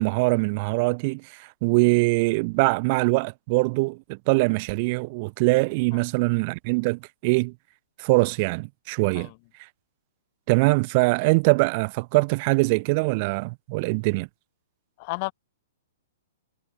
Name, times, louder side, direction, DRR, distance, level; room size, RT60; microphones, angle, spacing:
voice 1, 0.0-7.5 8.0-9.3 10.5-14.3, right 28 dB, 35° right, 1.1 m, -23 dB
voice 2, 15.0-15.3, left 30 dB, 35° left, 1.4 m, -31 dB
figure-of-eight pair, 110°, 0 cm